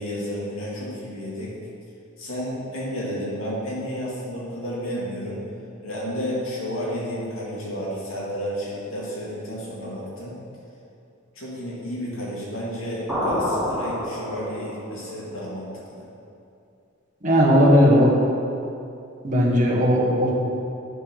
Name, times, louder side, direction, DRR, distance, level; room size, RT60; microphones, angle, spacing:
voice 1, 0.0-1.6 2.2-5.4 5.8-10.3 11.4-16.1, equal, 85° left, -5 dB, 2.4 m, -31 dB
sound 1, 13.1-14.8, left 1 dB, ahead, 2.2 m, -27 dB
voice 2, 17.2-18.1 19.2-20.3, equal, 40° right, -3 dB, 1.5 m, -17 dB
9.3 x 5.5 x 5.9 m, 2.6 s
head